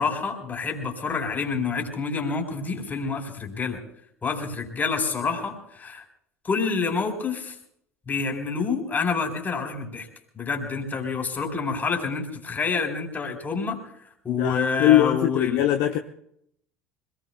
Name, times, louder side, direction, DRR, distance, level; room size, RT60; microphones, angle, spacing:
voice 1, 0.0-3.8 4.2-6.0 6.4-7.6 8.1-10.1 10.3-13.8 14.2-15.6, left 5 dB, 25° left, 3 dB, 4.0 m, -27 dB
voice 2, 14.3-16.0, left 13 dB, 55° left, 6 dB, 0.8 m, -21 dB
25.5 x 19.0 x 2.3 m, 0.72 s
figure-of-eight pair, 65°, 7 cm